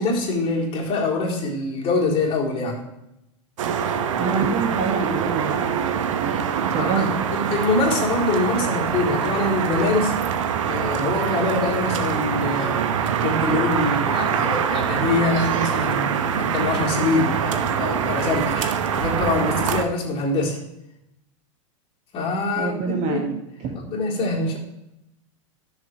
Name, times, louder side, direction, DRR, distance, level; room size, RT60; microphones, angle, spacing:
voice 1, 0.0-2.8 6.7-7.1 7.3-10.2 10.7-12.8 13.2-20.6 22.1-23.2 23.9-24.6, left 3 dB, 35° left, -3 dB, 3.9 m, -24 dB
sound 1, 3.6-19.8, right 7 dB, 80° right, 1.0 m, -24 dB
voice 2, 4.2-7.1 22.6-23.8, right 5 dB, 45° right, 3 dB, 2.0 m, -27 dB
13.0 x 7.1 x 3.2 m, 0.84 s
hypercardioid pair, 115°, 16 cm